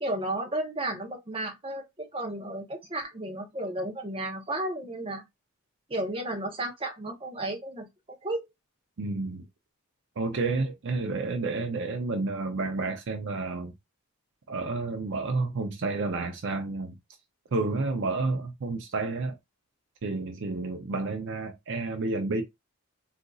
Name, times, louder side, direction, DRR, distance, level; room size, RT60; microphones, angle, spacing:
voice 1, 0.0-5.2 5.9-8.5, right 1 dB, 25° right, 0.8 m, -33 dB
voice 2, 9.0-9.5 10.2-13.7 14.5-17.0 17.5-19.3 20.0-22.4, right 3 dB, 55° right, 0.5 m, -30 dB
3.8 x 2.6 x 2.3 m
head